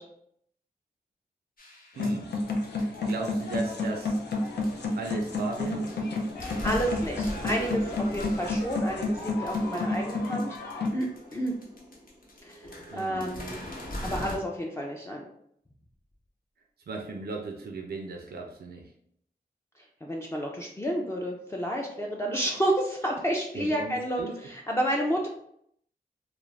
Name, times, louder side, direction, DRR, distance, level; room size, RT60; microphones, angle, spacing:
sound 1, 1.6-14.4, left 1 dB, 60° left, 0.9 m, -42 dB
sound 2, 2.0-10.9, left 2 dB, 90° left, 0.4 m, -30 dB
voice 1, 2.0-2.3 2.7-4.2 5.0-5.8 12.9-13.3 16.9-18.9 23.5-24.4, right 3 dB, 70° right, 2 dB, 0.4 m, -37 dB
voice 2, 6.6-10.6 10.9-11.5 12.4-13.6 14.0-15.2 19.8-25.3, right 1 dB, 15° left, -2 dB, 0.4 m, -30 dB
2.3 x 2.0 x 3.1 m, 0.70 s
cardioid pair, 45°, 17 cm